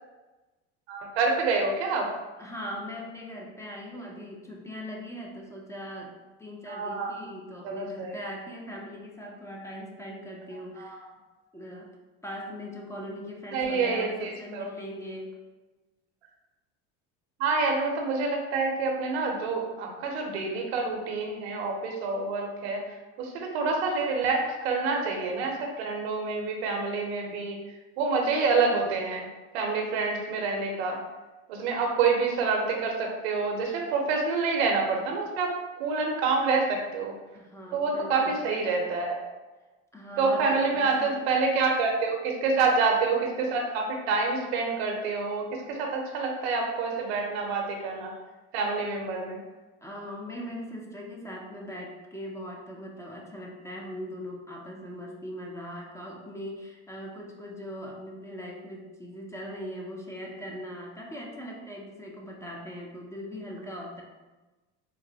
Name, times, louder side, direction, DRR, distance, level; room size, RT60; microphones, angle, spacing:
voice 1, 0.9-2.1 6.7-7.1 7.6-8.2 10.8-11.0 13.5-14.7 17.4-22.8 23.2-27.6 28.0-29.3 29.5-31.0 31.5-35.5 35.8-37.1 37.7-39.2 40.2-48.1 48.5-49.4, right 4 dB, 85° right, 1 dB, 0.7 m, -27 dB
voice 2, 2.4-11.1 11.5-12.0 12.2-15.4 37.3-38.4 39.9-41.2 49.8-64.0, equal, 10° left, -1 dB, 0.5 m, -40 dB
3.8 x 2.1 x 2.7 m, 1.2 s
supercardioid pair, 95°, 31 cm